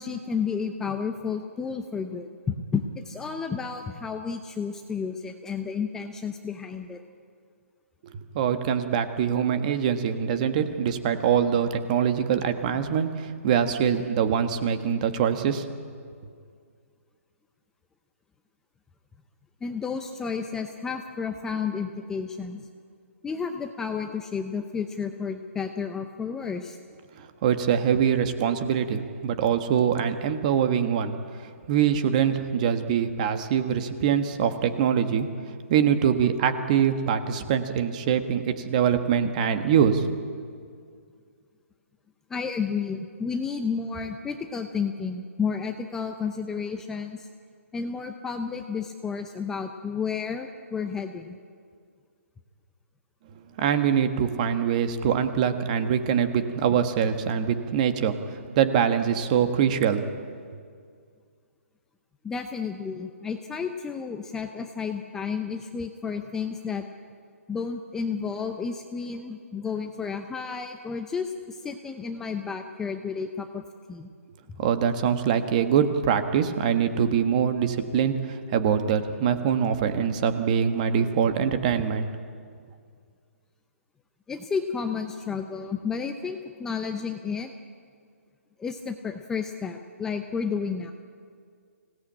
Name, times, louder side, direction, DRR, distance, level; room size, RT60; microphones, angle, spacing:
voice 1, 0.0-7.0 19.6-22.7 23.2-26.8 42.3-47.3 47.7-51.4 62.2-66.8 67.5-73.6 73.9-74.1 84.3-87.5 88.6-90.9, left 5 dB, 5° left, 5 dB, 0.6 m, -31 dB
voice 2, 8.0-15.7 27.2-35.3 35.7-40.1 53.6-60.1 74.6-82.1, right 8 dB, 30° right, 9 dB, 1.4 m, -24 dB
25.5 x 17.5 x 8.7 m, 2.1 s
hypercardioid pair, 160°, 8 cm